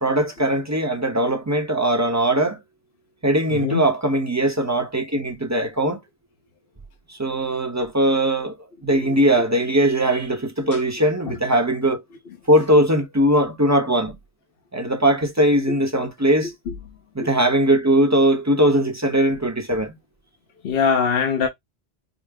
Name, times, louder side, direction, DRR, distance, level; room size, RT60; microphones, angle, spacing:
voice 1, 0.0-2.6 3.2-6.0 7.1-8.6 8.8-12.0 12.5-14.2 14.7-16.5 17.1-19.9, right 1 dB, 20° right, 0.7 m, -20 dB
voice 2, 3.5-3.9 8.9-9.0 9.4-9.5 10.7-10.8 11.3-11.4 15.7-15.8 16.7-16.8 17.2-17.3 20.6-21.5, left 6 dB, 65° left, 1.0 m, -23 dB
5.0 x 2.0 x 3.4 m
omnidirectional pair, 1.1 m